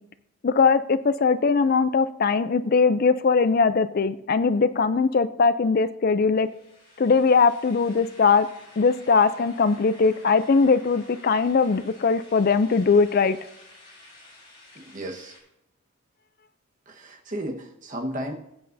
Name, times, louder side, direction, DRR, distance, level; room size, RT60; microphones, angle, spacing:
voice 1, 0.4-6.5 7.0-8.5 8.8-13.4, left 4 dB, 40° left, 13 dB, 0.4 m, -20 dB
sound 1, 6.4-15.4, left 2 dB, 25° left, 4.2 m, -51 dB
voice 2, 14.7-15.3 16.9-18.3, right 1 dB, 35° right, 3 dB, 1.3 m, -34 dB
20.0 x 8.7 x 2.7 m, 0.84 s
head